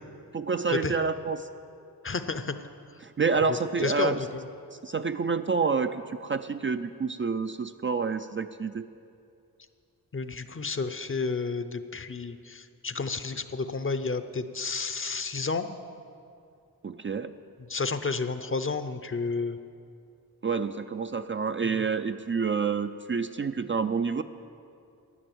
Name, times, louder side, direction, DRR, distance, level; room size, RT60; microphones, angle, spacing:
voice 1, 0.3-1.5 3.0-4.2 4.8-8.9 16.8-17.3 20.4-24.2, right 5 dB, 35° right, 9 dB, 0.4 m, -28 dB
voice 2, 2.0-2.5 3.8-4.5 10.1-15.7 17.7-19.6 21.6-21.8, left 4 dB, 35° left, 10 dB, 0.6 m, -31 dB
11.0 x 9.7 x 7.8 m, 2.5 s
wide cardioid pair, 90°, 37 cm